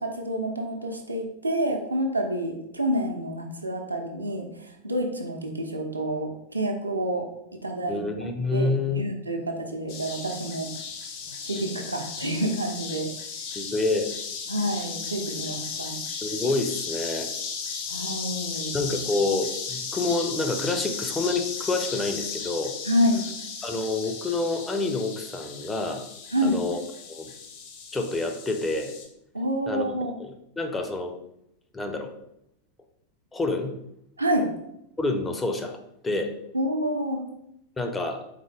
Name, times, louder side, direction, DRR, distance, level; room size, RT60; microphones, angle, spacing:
voice 1, 0.0-7.3 7.6-8.0 8.5-10.7 11.4-13.1 14.5-16.0 17.9-18.7 22.8-23.3 26.3-26.6 29.3-30.1 34.2-34.5 36.5-37.3, equal, 80° right, 2 dB, 0.7 m, -28 dB
voice 2, 7.9-9.0 13.5-14.1 16.2-17.3 18.7-22.8 23.6-26.0 26.4-26.8 27.1-27.3 27.9-28.9 29.7-30.3 30.6-31.2 31.7-32.1 33.3-33.8 35.0-35.8 36.0-36.4 37.8-38.2, left 3 dB, 10° left, 5 dB, 0.5 m, -28 dB
sound 1, 9.9-29.1, left 5 dB, 45° left, 0.8 m, -35 dB
3.8 x 3.7 x 3.3 m, 0.80 s
figure-of-eight pair, 90°, 0 cm